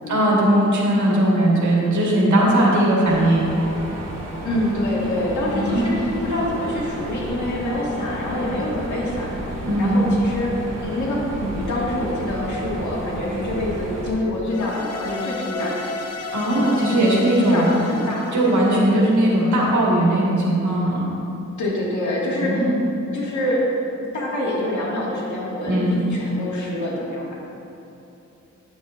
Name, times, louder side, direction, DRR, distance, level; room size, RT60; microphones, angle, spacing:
voice 1, 0.1-3.5 5.5-6.0 9.6-10.0 16.3-17.6 18.3-21.1 22.4-22.8 25.6-26.0, right 1 dB, 80° right, -4 dB, 1.6 m, -19 dB
Mechanisms, 3.1-14.1, right 1 dB, 60° right, 1.2 m, -32 dB
voice 2, 4.4-9.3 9.8-10.6 10.8-16.0 16.5-18.3 18.8-19.2 21.6-22.7 23.1-23.6 24.1-27.3, left 1 dB, 80° left, -5 dB, 1.7 m, -25 dB
sound 1, 14.5-19.7, left 4 dB, 60° left, 0.6 m, -34 dB
9.1 x 7.2 x 2.5 m, 2.9 s
wide cardioid pair, 105°, 29 cm